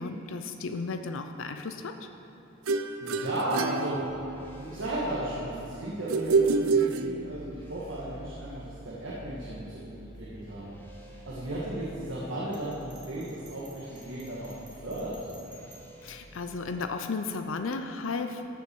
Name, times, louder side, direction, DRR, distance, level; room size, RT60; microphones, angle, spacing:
voice 1, 0.0-1.9 16.0-18.4, left 4 dB, 65° left, 7 dB, 0.5 m, -34 dB
sound 1, 2.7-4.6 6.1-7.6, right 4 dB, 85° right, 0.5 m, -27 dB
voice 2, 3.0-4.0 4.5-15.1, right 1 dB, 65° right, -7 dB, 1.7 m, -35 dB
sound 2, 3.9-16.7, equal, 10° left, 1.2 m, -49 dB
Bell, 12.5-16.1, right 1 dB, 25° right, 2.3 m, -54 dB
14.5 x 7.2 x 4.5 m, 3.0 s
head